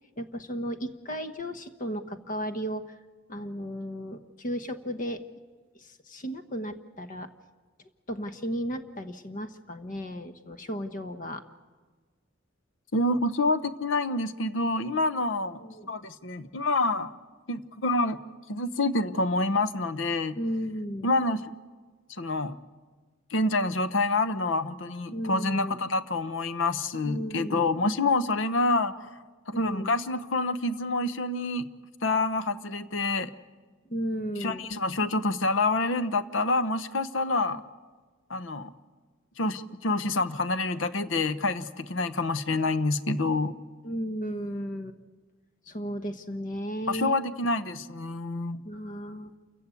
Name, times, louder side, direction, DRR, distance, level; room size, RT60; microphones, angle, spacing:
voice 1, 0.2-2.8 3.3-5.2 5.7-7.3 8.1-11.4 15.6-15.9 20.4-21.1 25.1-25.8 27.0-27.7 29.5-29.9 33.9-34.7 43.8-45.0 45.7-47.2 48.6-49.3, equal, 40° left, 8 dB, 1.0 m, -34 dB
voice 2, 12.9-15.6 15.9-17.1 17.5-18.2 18.5-20.4 21.0-21.4 22.2-22.6 23.3-28.9 29.5-31.7 32.0-33.3 34.4-37.6 38.3-38.7 39.4-43.5 46.9-48.6, left 2 dB, 75° left, 13 dB, 0.9 m, -27 dB
28.5 x 15.5 x 8.4 m, 1.4 s
head